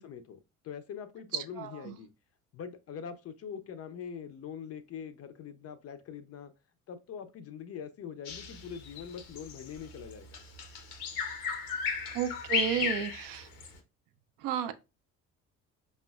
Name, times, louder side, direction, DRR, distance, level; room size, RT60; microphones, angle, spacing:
voice 1, 0.0-2.1 2.5-6.5 6.9-10.4 12.8-12.9, left 7 dB, 35° left, 0.5 m, -43 dB
voice 2, 1.3-2.0 12.1-13.5 14.4-14.7, right 9 dB, 50° right, 0.4 m, -33 dB
Bird vocalization bird call bird song, 8.2-13.8, left 6 dB, 75° left, 0.7 m, -35 dB
5.2 x 2.1 x 2.2 m
figure-of-eight pair, 50°, 43 cm